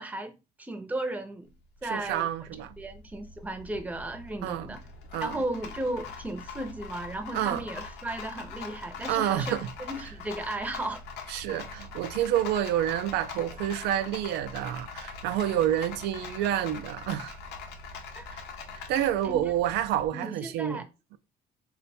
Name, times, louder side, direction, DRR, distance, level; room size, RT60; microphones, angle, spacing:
voice 1, 0.0-1.5 1.8-2.3 2.8-4.8 5.2-9.6 9.9-11.0 18.2-18.3 19.2-19.5 20.1-20.8, right 1 dB, 10° right, 0.6 m, -35 dB
Rattle, 1.5-20.1, left 4 dB, 85° left, 0.7 m, -43 dB
voice 2, 1.9-2.7 4.4-4.7 5.1-5.3 7.3-7.6 9.1-9.7 11.3-17.4 18.3-18.4 18.9-20.9, right 11 dB, 85° right, 0.4 m, -28 dB
3.1 x 2.2 x 4.1 m
cardioid pair, 110°, 17 cm